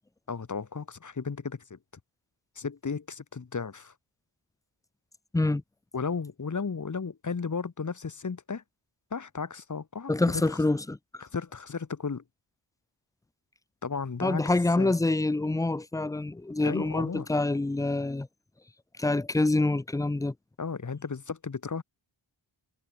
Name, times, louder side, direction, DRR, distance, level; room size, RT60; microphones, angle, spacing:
voice 1, 0.3-1.8 2.5-3.9 5.9-8.6 9.1-10.6 11.2-12.2 13.8-14.4 14.8-14.9 16.6-17.3 20.6-21.8, left 5 dB, 40° left, 1.4 m, -34 dB
voice 2, 10.1-11.0 14.2-18.3 19.0-20.3, left 2 dB, 10° left, 0.3 m, -26 dB
wide cardioid pair, 80°, 47 cm